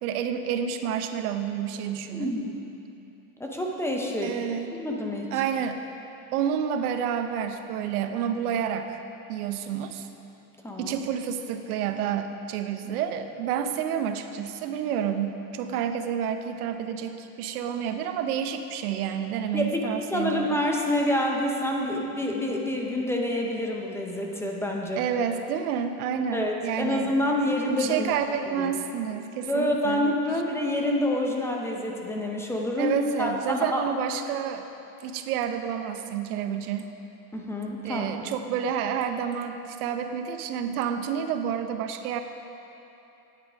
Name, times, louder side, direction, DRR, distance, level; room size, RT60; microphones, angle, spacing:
voice 1, 0.0-2.4 4.2-4.7 5.3-5.8 6.3-9.0 9.3-10.1 10.8-20.5 25.0-27.1 27.7-30.1 32.8-34.7 35.0-36.9 37.8-42.2, right 8 dB, 85° right, 7 dB, 0.8 m, -29 dB
voice 2, 2.1-2.5 3.4-4.4 4.8-5.3 10.6-11.0 19.5-25.0 26.3-28.2 28.6-28.7 29.5-33.8 37.3-38.0, left 1 dB, 5° left, 0 dB, 0.5 m, -27 dB
9.5 x 8.2 x 4.9 m, 2.9 s
supercardioid pair, 145°, 43 cm